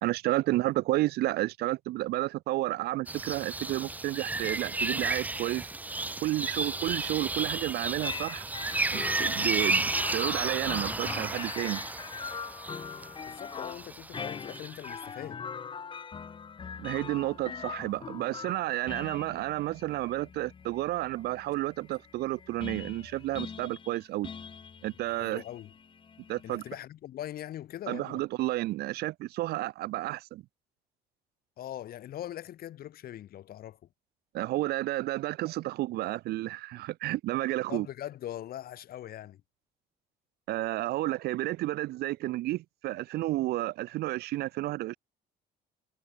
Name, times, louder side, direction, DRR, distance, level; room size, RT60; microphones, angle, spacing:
voice 1, 0.0-5.7 6.2-8.5 8.9-11.8 16.8-24.3 24.8-25.4 26.3-26.6 27.9-30.4 34.3-37.9 40.5-45.0, right 17 dB, 70° right, 0.5 m, -31 dB
sound 1, 3.1-15.0, right 2 dB, 10° right, 0.5 m, -33 dB
sound 2, 8.0-26.7, left 6 dB, 30° left, 1.0 m, -42 dB
voice 2, 13.2-15.4 25.1-25.7 26.4-28.2 31.6-33.8 37.7-39.4, left 12 dB, 65° left, 3.2 m, -41 dB
cardioid pair, 110°, 17 cm